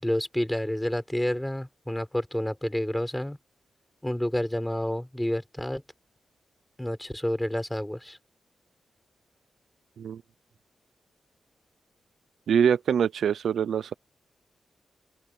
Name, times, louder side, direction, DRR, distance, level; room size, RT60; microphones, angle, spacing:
voice 1, 0.0-3.4 4.0-5.8 6.8-8.2, left 1 dB, 5° left, 4.2 m, -29 dB
voice 2, 12.5-13.9, right 8 dB, 85° right, 0.6 m, -24 dB
open air
wide cardioid pair, 145°, 0 cm